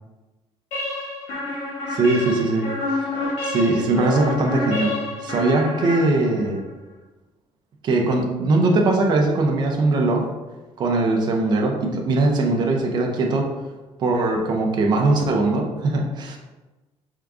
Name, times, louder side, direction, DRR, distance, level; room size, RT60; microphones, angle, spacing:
sound 1, 0.7-6.6, left 2 dB, 75° left, 1.4 m, -28 dB
voice 1, 1.9-2.6 2.9-3.1 3.4-4.9 5.2-6.6 7.8-10.3 10.8-13.5 14.0-16.4, right 2 dB, 40° right, 1 dB, 0.6 m, -20 dB
5.0 x 3.6 x 2.3 m, 1.2 s
cardioid pair, 170°, 11 cm